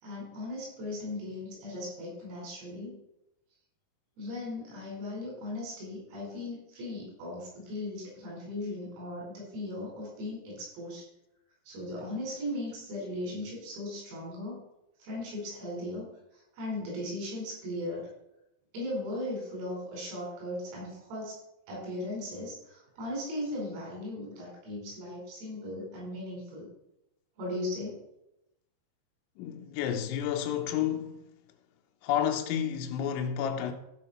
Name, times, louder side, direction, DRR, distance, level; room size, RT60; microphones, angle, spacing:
voice 1, 0.0-3.0 4.2-11.0 11.7-14.6 15.0-16.1 16.5-18.1 18.7-21.4 21.7-26.7 27.4-28.0, left 1 dB, 90° right, 7.5 m, -37 dB
voice 2, 29.4-31.2 32.0-33.7, left 9 dB, 75° left, 2.9 m, -30 dB
15.0 x 6.2 x 4.3 m
omnidirectional pair, 6.0 m